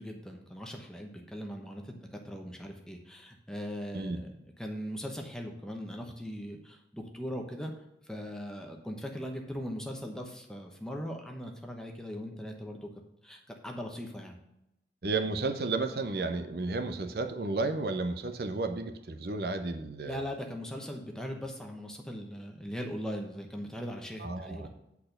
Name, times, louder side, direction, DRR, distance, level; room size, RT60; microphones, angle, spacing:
voice 1, 0.0-7.7 8.0-12.9 13.2-14.4 20.0-24.7, equal, 5° left, 2 dB, 0.9 m, -40 dB
voice 2, 15.0-20.2 24.2-24.7, right 3 dB, 60° right, 8 dB, 0.6 m, -32 dB
8.2 x 4.3 x 6.6 m, 0.88 s
head